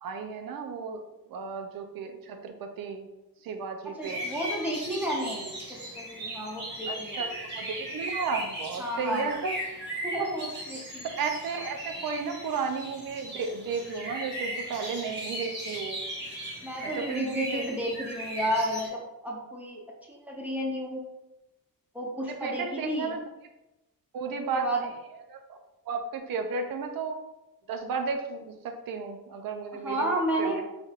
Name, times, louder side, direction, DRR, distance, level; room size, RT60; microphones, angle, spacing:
voice 1, 0.0-1.0 1.3-3.1 3.4-4.3 6.9-9.6 10.2-10.3 11.2-16.0 17.0-17.7 22.4-23.2 24.1-24.7 25.3-25.4 25.9-27.2 27.7-30.1 30.4-30.6, right 5 dB, 70° right, 6 dB, 0.6 m, -33 dB
voice 2, 3.8-7.3 8.8-9.4 10.0-11.1 16.6-19.8 20.1-21.0 21.9-23.2 24.5-24.9 29.8-30.6, right 1 dB, 5° right, -3 dB, 0.7 m, -32 dB
sound 1, 4.0-18.9, right 1 dB, 30° right, 1.2 m, -38 dB
4.2 x 3.4 x 2.4 m, 0.98 s
wide cardioid pair, 160°, 36 cm